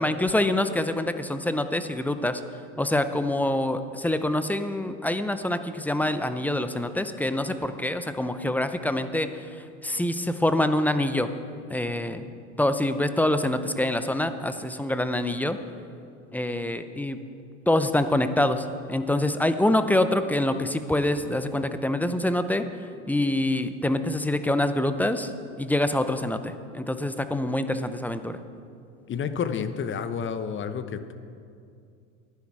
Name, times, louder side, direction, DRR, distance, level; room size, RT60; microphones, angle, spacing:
voice 1, 0.0-2.4 2.8-9.5 9.8-11.3 11.7-12.3 12.6-15.6 16.3-17.2 17.7-22.7 23.1-25.3 25.6-28.4, left 1 dB, 5° left, 10 dB, 0.6 m, -25 dB
voice 2, 29.1-31.1, left 7 dB, 30° left, 10 dB, 0.9 m, -30 dB
14.5 x 10.5 x 4.8 m, 2.4 s
hypercardioid pair, 90°, 39 cm